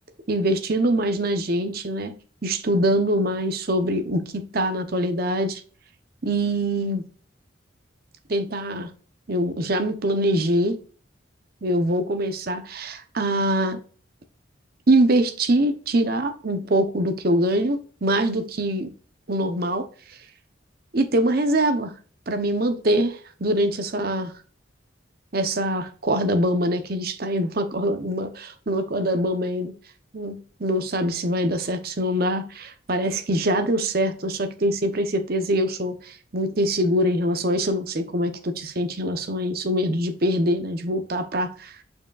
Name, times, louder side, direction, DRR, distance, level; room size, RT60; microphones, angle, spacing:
voice 1, 0.3-2.1 2.4-5.6 6.2-7.0 8.3-8.9 9.3-10.8 11.6-13.8 14.9-18.9 19.3-19.8 20.9-21.9 22.3-24.3 25.3-29.7 30.1-30.3 30.6-41.7, right 1 dB, 50° right, 0.8 m, -23 dB
6.9 x 5.6 x 2.4 m
head